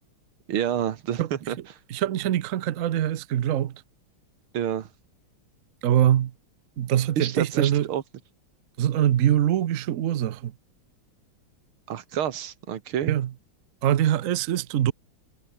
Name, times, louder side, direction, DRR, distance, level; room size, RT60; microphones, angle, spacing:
voice 1, 0.5-1.8 4.5-4.9 7.2-8.0 11.9-13.1, right 10 dB, 85° right, 2.2 m, -28 dB
voice 2, 1.9-3.7 5.8-6.3 6.8-7.9 8.8-10.5 13.1-13.3 13.8-14.9, right 11 dB, 65° right, 0.8 m, -23 dB
omnidirectional pair, 2.3 m